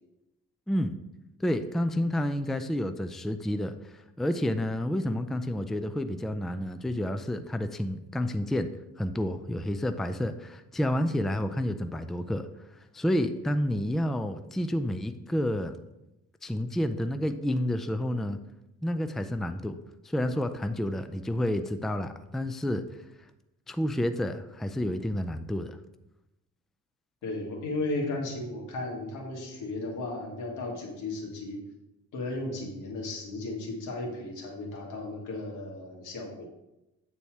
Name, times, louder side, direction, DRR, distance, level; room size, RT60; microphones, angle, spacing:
voice 1, 1.4-8.7 9.0-12.5 12.9-15.7 16.4-18.4 18.8-19.8 20.0-22.8 23.7-25.8, left 1 dB, ahead, 9 dB, 0.4 m, -29 dB
voice 2, 27.2-31.6 32.1-36.4, left 2 dB, 85° left, 0 dB, 1.9 m, -35 dB
8.7 x 4.2 x 4.6 m, 0.93 s
cardioid pair, 90°, 30 cm